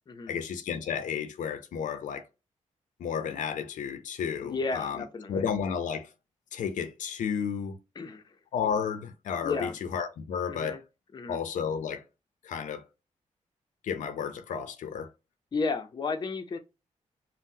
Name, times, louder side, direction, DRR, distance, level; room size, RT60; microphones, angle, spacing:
voice 1, 0.3-2.3 3.0-6.1 6.5-7.8 8.5-10.8 11.3-12.0 12.4-12.9 13.8-15.1, left 7 dB, 90° left, 0.5 m, -32 dB
voice 2, 4.4-5.4 8.0-8.4 9.4-9.7 10.5-10.8 11.1-11.4 15.5-16.6, left 4 dB, 35° left, 0.5 m, -33 dB
3.6 x 2.0 x 2.6 m
wide cardioid pair, 115°, 13 cm